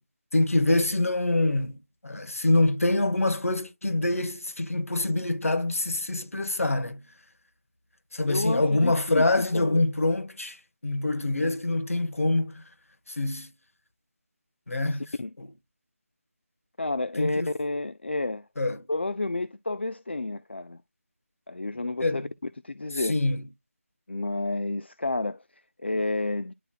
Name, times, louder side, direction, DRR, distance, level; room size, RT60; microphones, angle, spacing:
voice 1, 0.3-7.0 8.1-12.6 13.1-13.5 14.7-15.1 15.4-15.5 17.2-17.5 18.6-18.8 22.0-22.3 22.9-23.4, left 2 dB, 65° left, 1.6 m, -25 dB
voice 2, 8.3-9.8 15.2-15.3 16.8-18.4 18.9-20.8 21.5-22.3 22.6-23.2 24.1-25.4 25.8-26.5, left 2 dB, 45° left, 0.4 m, -30 dB
10.5 x 4.4 x 2.4 m
figure-of-eight pair, 180°, 8 cm